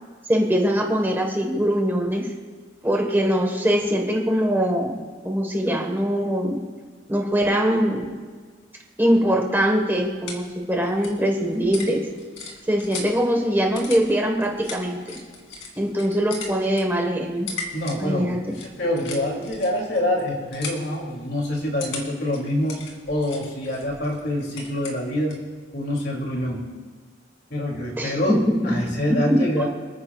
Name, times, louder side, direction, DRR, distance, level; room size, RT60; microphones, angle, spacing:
voice 1, 0.3-2.3 2.8-6.6 7.1-8.2 9.0-12.1 12.7-15.0 15.8-17.5 18.0-18.6 28.0-28.8 29.1-29.4, equal, 10° right, 1 dB, 1.4 m, -22 dB
sound 1, 10.0-25.5, left 3 dB, 85° left, 2.6 m, -40 dB
voice 2, 17.7-22.8 23.1-25.4 25.7-26.6 27.5-29.7, left 1 dB, 60° left, -1 dB, 2.8 m, -26 dB
28.5 x 9.7 x 2.4 m, 1.5 s
head